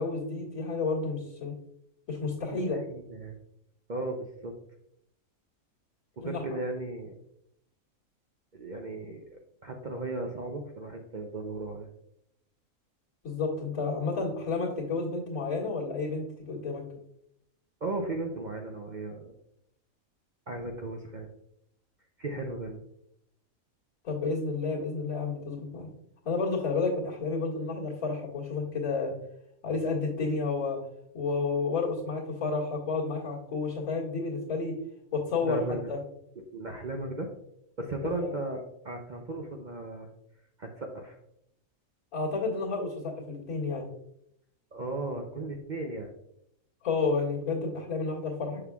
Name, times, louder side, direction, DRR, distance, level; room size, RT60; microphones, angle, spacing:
voice 1, 0.0-1.5 2.1-2.8 6.2-6.4 13.2-16.8 24.0-25.9 26.2-29.1 29.6-30.8 31.1-34.7 35.1-35.6 35.9-36.0 38.2-38.3 42.1-43.9 46.8-48.6, left 4 dB, 75° left, -5 dB, 2.4 m, -31 dB
voice 2, 2.5-3.4 3.9-4.5 6.2-7.1 8.5-11.9 17.8-19.4 20.5-21.3 22.2-22.8 35.4-36.0 36.4-37.3 37.8-40.1 40.6-41.2 44.7-46.1, right 2 dB, 45° right, 2 dB, 0.6 m, -36 dB
6.9 x 6.7 x 2.3 m, 0.75 s
omnidirectional pair, 1.4 m